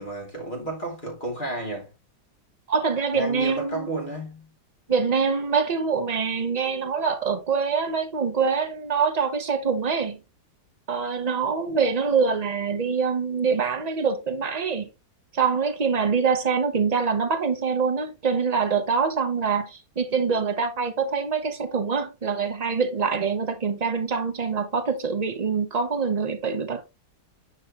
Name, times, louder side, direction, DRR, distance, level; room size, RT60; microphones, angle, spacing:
voice 1, 0.0-1.9 3.1-4.5 11.7-11.8, right 2 dB, 30° left, 3.1 m, -32 dB
voice 2, 2.7-3.9 4.9-10.2 10.9-14.9 15.3-26.8, right 5 dB, 30° right, 0.9 m, -25 dB
9.5 x 4.5 x 3.0 m
omnidirectional pair, 1.7 m